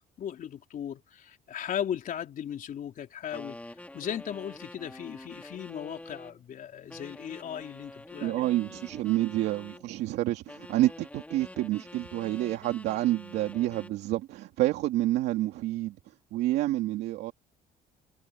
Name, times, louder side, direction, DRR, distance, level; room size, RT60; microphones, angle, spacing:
voice 1, 0.2-3.6 3.9-8.3, left 9 dB, 55° left, 3.9 m, -37 dB
sound 1, 3.3-6.4 6.9-9.9 10.5-14.0, left 1 dB, 10° left, 3.0 m, -46 dB
voice 2, 8.2-17.3, right 15 dB, 85° right, 2.5 m, -28 dB
cardioid pair, 110°, 17 cm